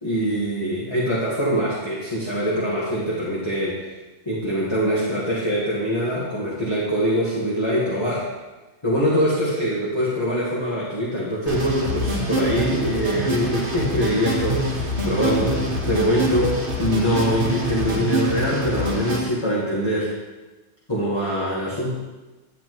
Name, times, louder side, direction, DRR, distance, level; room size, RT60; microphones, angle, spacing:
voice 1, 0.0-3.8 4.2-8.3 8.8-15.6 15.9-20.1 20.9-21.9, equal, 25° left, -6 dB, 1.5 m, -23 dB
sound 1, 11.5-19.2, right 1 dB, 45° right, 1.5 m, -25 dB
9.9 x 8.5 x 3.0 m, 1.2 s
omnidirectional pair, 1.3 m